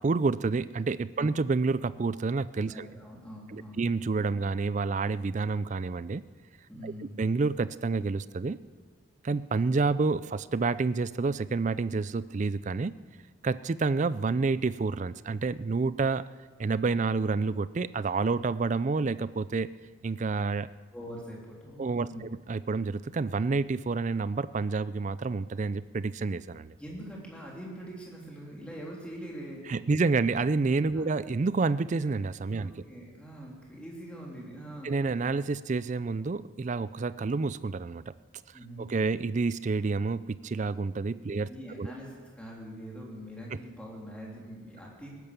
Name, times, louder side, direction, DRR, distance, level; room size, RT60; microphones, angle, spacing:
voice 1, 0.0-2.9 3.5-6.2 6.8-6.9 7.2-8.6 9.2-12.9 13.4-16.3 16.6-19.7 20.0-20.7 21.8-26.7 29.7-32.7 34.8-38.1 38.8-41.5 41.8-41.9, right 4 dB, 35° right, 16 dB, 0.4 m, -29 dB
voice 2, 2.7-3.8 6.7-7.2 20.9-22.2 26.8-29.6 30.9-31.1 32.5-35.0 38.5-38.9 41.3-45.1, equal, 5° left, -3 dB, 3.2 m, -43 dB
18.0 x 11.0 x 6.8 m, 1.5 s
head